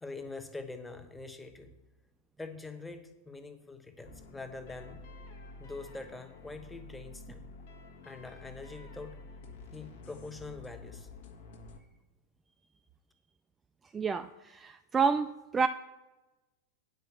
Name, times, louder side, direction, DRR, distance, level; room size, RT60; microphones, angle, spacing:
voice 1, 0.0-1.7 2.4-5.0 5.6-7.5 8.0-9.2 9.7-11.1, left 3 dB, 10° left, 8 dB, 1.1 m, -44 dB
sound 1, 4.0-11.8, left 3 dB, 55° left, 1.2 m, -50 dB
voice 2, 13.9-15.3 15.5-15.7, right 5 dB, 15° right, 10 dB, 0.3 m, -28 dB
9.4 x 5.0 x 6.9 m, 1.1 s
figure-of-eight pair, 90°, 0 cm